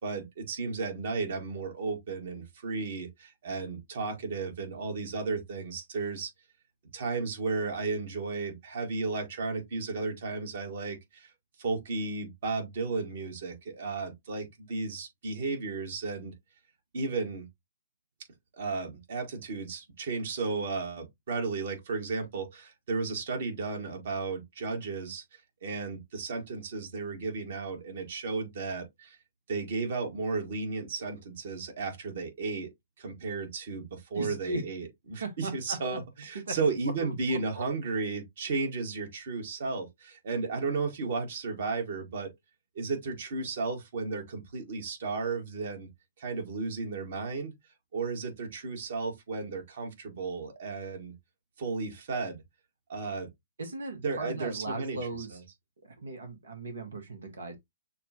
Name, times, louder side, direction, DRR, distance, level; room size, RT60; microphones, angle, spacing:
voice 1, 0.0-6.3 6.9-11.3 11.6-16.3 16.9-17.5 18.5-25.2 25.6-29.2 29.5-32.7 33.0-42.3 42.8-45.9 46.2-47.5 47.9-51.1 51.6-52.4 52.9-53.3 54.0-55.0 55.3-55.4, right 4 dB, 60° right, 1.8 m, -34 dB
voice 2, 34.1-34.6 35.2-36.6 37.0-37.6 53.6-55.4 55.8-57.6, right 2 dB, 80° right, 1.3 m, -38 dB
6.5 x 2.4 x 2.9 m
hypercardioid pair, 120°, 0 cm